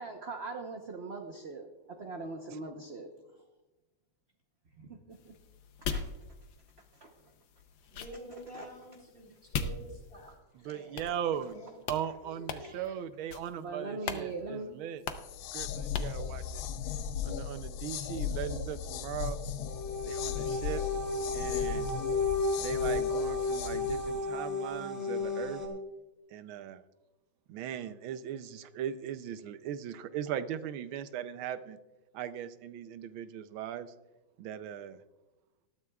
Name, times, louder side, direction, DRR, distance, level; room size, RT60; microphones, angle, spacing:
voice 1, 0.0-3.4 5.2-5.3 5.9-6.0 6.9-7.1 8.5-8.7 10.3-10.4 12.5-12.7 13.6-14.7, right 3 dB, 45° right, 3 dB, 0.8 m, -41 dB
sound 1, 5.1-10.4 11.0-11.6 11.8-12.0 12.5-12.9 13.3-13.6 14.0-14.3 14.5-14.6 15.1-15.4 15.9-16.2, left 6 dB, 70° left, 1.4 m, -40 dB
voice 2, 7.9-10.3 10.7-11.1 11.5-11.7 12.2-13.0, equal, 30° left, -2 dB, 4.0 m, -49 dB
voice 3, 10.5-15.0 15.5-16.7 17.2-19.4 20.0-20.8 21.3-21.9 22.6-25.6 26.3-26.8 27.5-31.8 32.1-33.9 34.4-35.0, right 9 dB, 85° right, 12 dB, 1.5 m, -39 dB
sound 2, 15.2-24.2, left 8 dB, 85° left, 1.4 m, -37 dB
sound 3, 19.6-25.7, left 3 dB, 10° left, 3.4 m, -33 dB
19.5 x 12.5 x 2.3 m, 1.0 s
omnidirectional pair, 2.2 m